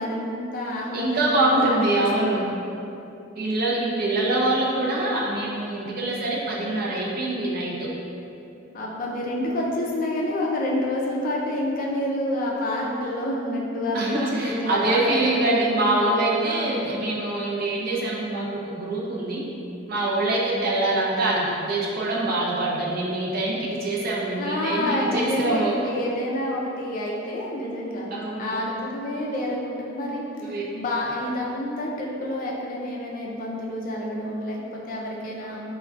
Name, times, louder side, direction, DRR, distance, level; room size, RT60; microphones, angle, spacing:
voice 1, 0.0-2.5 8.7-16.9 24.4-28.1 28.4-35.6, left 1 dB, 45° left, -3 dB, 0.4 m, -28 dB
voice 2, 0.9-2.5 3.4-7.9 13.9-19.5 19.9-25.7 28.1-28.6 30.4-30.7, right 2 dB, 50° right, -4 dB, 0.5 m, -24 dB
3.5 x 2.2 x 2.4 m, 2.7 s
head